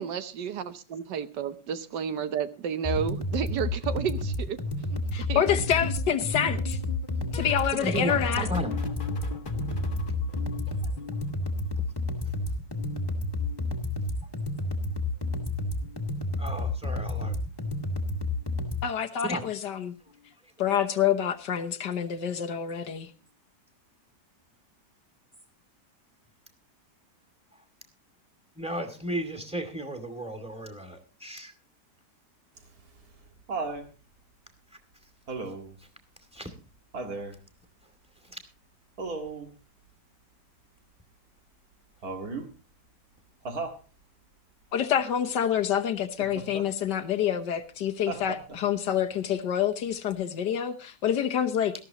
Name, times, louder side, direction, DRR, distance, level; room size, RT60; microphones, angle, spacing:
voice 1, 0.0-4.6 4.9-5.0 5.3-5.4, right 8 dB, 75° right, 12 dB, 1.5 m, -31 dB
sound 1, 2.8-18.8, left 2 dB, 15° left, 1.7 m, -30 dB
voice 2, 5.1-6.8 7.3-8.5 18.8-20.0 20.6-23.1 44.7-51.7, left 9 dB, 75° left, 7 dB, 1.7 m, -27 dB
sound 2, 5.5-12.3 12.6-14.1 15.1-15.5 15.7-16.1 17.6-17.9 18.2-18.5 20.1-20.2, left 4 dB, 30° left, 1.4 m, -41 dB
voice 3, 7.7-8.7 10.7-10.8 16.4-17.4 19.2-19.4 28.6-31.5 36.3-36.5 38.2-38.4, equal, 5° right, 6 dB, 2.2 m, -34 dB
Laughter, 32.6-33.9 35.3-35.8 36.9-37.4 39.0-39.5 42.0-42.5 43.5-43.8 46.2-46.7 48.1-48.7 50.1-50.2, right 3 dB, 55° right, 2.3 m, -35 dB
18.5 x 13.5 x 2.9 m, 0.32 s
omnidirectional pair, 1.9 m